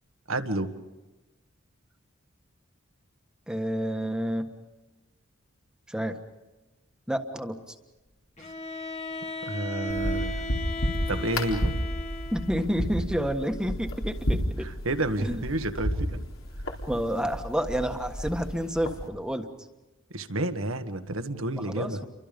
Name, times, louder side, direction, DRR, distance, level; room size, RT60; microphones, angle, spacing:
voice 1, 0.3-0.7 9.4-10.5 11.1-11.8 14.6-16.2 20.1-22.0, right 2 dB, 75° right, 9 dB, 1.6 m, -30 dB
voice 2, 3.5-4.5 5.9-6.2 7.1-7.6 12.3-14.7 15.2-15.4 16.9-19.5 21.6-22.1, equal, 5° right, 5 dB, 1.4 m, -29 dB
Bowed string instrument, 8.4-12.7, left 1 dB, 30° left, 1.9 m, -35 dB
sound 1, 9.9-19.1, equal, 75° left, 3.9 m, -32 dB
30.0 x 24.5 x 5.3 m, 1.1 s
head